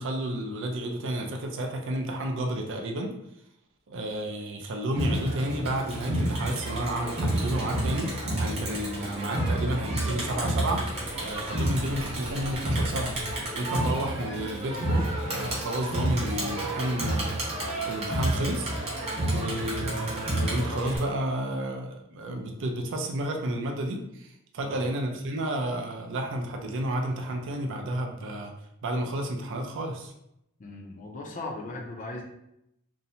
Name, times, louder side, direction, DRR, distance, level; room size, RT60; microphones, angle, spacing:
voice 1, 0.0-3.1 3.9-8.1 8.4-10.8 11.2-13.1 13.5-18.7 19.3-28.5 28.8-30.1, right 1 dB, 60° right, 3 dB, 0.4 m, -31 dB
Crowd, 5.0-21.0, right 1 dB, 30° right, 0.8 m, -30 dB
voice 2, 30.6-32.2, left 2 dB, 35° left, 1 dB, 0.4 m, -38 dB
2.6 x 2.1 x 2.7 m, 0.80 s
head